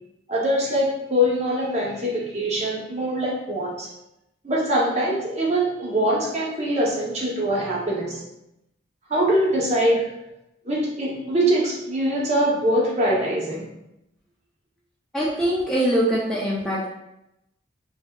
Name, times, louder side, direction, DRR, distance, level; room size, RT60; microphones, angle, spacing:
voice 1, 0.3-3.9 4.4-8.2 9.1-10.1 10.6-13.7, equal, 35° right, -3 dB, 0.6 m, -23 dB
voice 2, 15.1-16.9, right 1 dB, 5° left, -7 dB, 0.3 m, -23 dB
3.4 x 2.6 x 2.2 m, 0.87 s
head